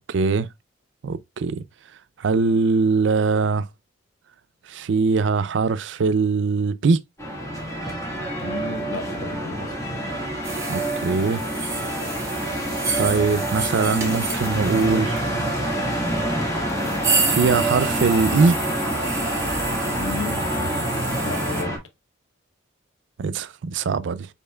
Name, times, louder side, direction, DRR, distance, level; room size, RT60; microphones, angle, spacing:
voice 1, 0.1-0.5 1.0-1.6 2.2-3.6 4.7-7.0 10.7-11.4 13.0-15.3 17.3-18.5 23.2-24.3, right 4 dB, 65° right, 0.4 m, -21 dB
sound 1, 7.2-21.8, right 1 dB, 15° left, 1.5 m, -27 dB
voice 2, 8.4-9.8 19.9-20.4 21.2-21.8, left 3 dB, 90° left, 0.8 m, -33 dB
sound 2, 10.4-21.6, right 4 dB, 15° right, 1.3 m, -30 dB
5.4 x 4.3 x 2.2 m
head